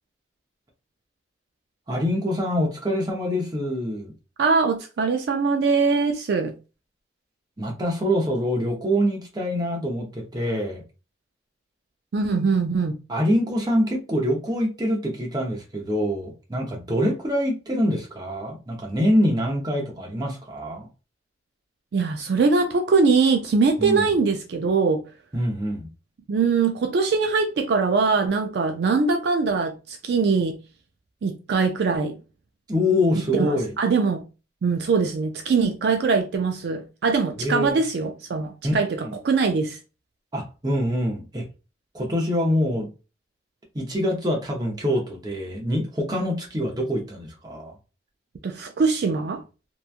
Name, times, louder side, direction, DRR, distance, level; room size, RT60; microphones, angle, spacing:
voice 1, 1.9-4.1 7.6-10.8 13.1-20.9 23.8-24.0 25.3-25.9 32.7-33.7 37.4-37.8 38.6-39.1 40.3-41.4 41.9-42.9 43.7-47.7, equal, 20° right, 0.7 m, -25 dB
voice 2, 4.4-6.5 12.1-13.0 21.9-25.0 26.3-30.6 31.2-32.2 33.3-34.2 34.6-39.8 48.4-49.4, right 4 dB, 60° right, 0.3 m, -22 dB
2.9 x 2.2 x 2.4 m
head